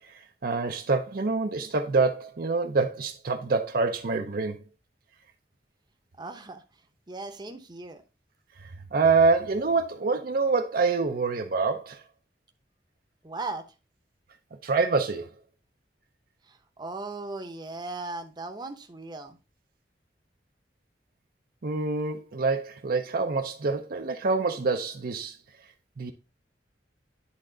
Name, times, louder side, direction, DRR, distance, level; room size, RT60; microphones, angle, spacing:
voice 1, 0.4-4.6 8.9-12.0 14.6-15.3 21.6-25.3 26.0-26.1, right 4 dB, 55° right, 0.6 m, -26 dB
voice 2, 6.2-6.6 7.1-8.0 13.2-13.6 16.8-19.4, right 3 dB, 25° right, 0.8 m, -37 dB
9.9 x 3.7 x 3.8 m
head